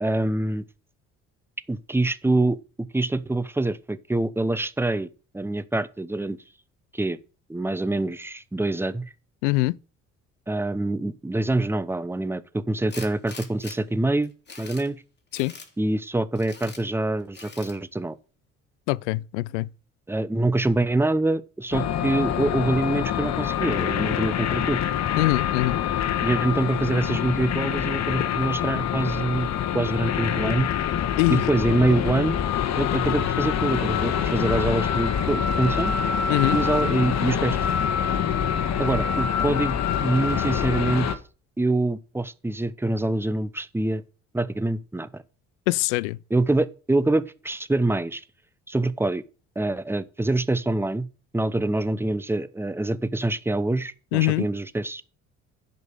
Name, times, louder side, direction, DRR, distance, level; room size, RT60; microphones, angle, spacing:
voice 1, 0.0-0.6 1.7-5.1 5.3-6.4 6.9-7.2 7.5-9.0 10.5-14.3 14.6-15.0 15.8-18.2 20.1-24.8 26.2-30.8 31.3-32.4 32.8-35.9 36.5-37.6 38.8-41.1 41.6-44.0 44.3-45.2 46.3-48.2 48.7-49.2 49.6-51.1 51.3-55.0, right 2 dB, 5° right, 0.9 m, -25 dB
voice 2, 9.4-9.8 15.3-15.5 18.9-19.7 25.1-25.8 31.2-31.4 36.3-36.6 45.7-46.2 54.1-54.5, left 21 dB, 70° left, 0.5 m, -23 dB
Tools, 12.9-13.8 14.2-14.9 15.3-15.7 16.4-16.8 17.3-17.8, left 4 dB, 25° left, 2.9 m, -42 dB
sound 1, 21.7-41.2, left 8 dB, 45° left, 1.4 m, -25 dB
10.5 x 5.4 x 6.5 m
figure-of-eight pair, 50°, 37 cm